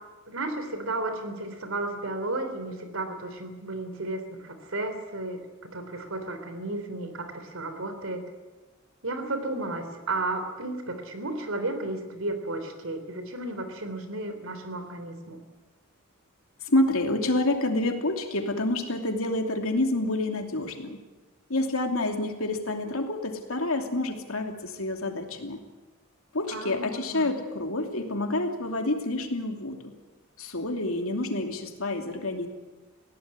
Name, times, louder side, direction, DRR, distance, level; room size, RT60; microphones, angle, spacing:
voice 1, 0.3-5.4 5.7-8.2 9.0-15.4 26.5-27.3, right 2 dB, 70° right, 8 dB, 3.6 m, -33 dB
voice 2, 16.7-21.0 21.5-25.6 26.3-29.9 30.4-32.5, left 2 dB, 85° left, 4 dB, 2.8 m, -28 dB
20.5 x 17.0 x 9.5 m, 1.2 s
head